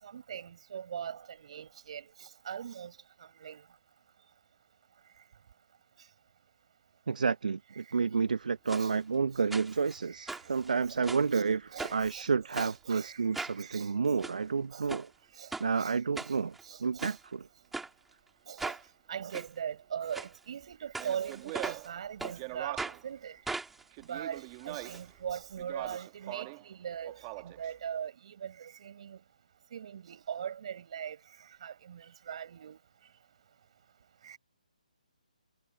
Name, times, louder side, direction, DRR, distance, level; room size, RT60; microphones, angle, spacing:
voice 1, 0.0-3.6 8.8-8.9 10.1-10.5 11.3-11.4 11.7-12.2 12.6-13.9 14.7-14.9 15.4-15.5 15.8-17.2 18.5-18.8 19.1-23.4 24.1-29.2 29.7-32.8 34.2-34.4, right 8 dB, 45° right, 7.6 m, -41 dB
voice 2, 7.1-15.1 15.6-16.5 16.8-17.5, right 5 dB, 70° right, 0.9 m, -30 dB
sound 1, 8.7-8.9 9.5-10.0 10.3-11.3 11.8-12.1 12.5-12.7 13.3-13.6 14.0-14.4 14.9-15.1 15.5-15.7 16.2-16.6 17.0-17.2 17.7-17.9 18.6-18.8 19.3-19.5 20.1-20.3 20.9-21.9 22.2-22.4 22.8-23.0 23.5-25.0 25.3-25.4 25.6-25.7, right 3 dB, 5° right, 2.4 m, -39 dB
Speech, 20.9-23.1 23.9-25.1 25.6-26.7 27.0-27.7, right 27 dB, 25° right, 1.6 m, -42 dB
hypercardioid pair, 155°, 4 cm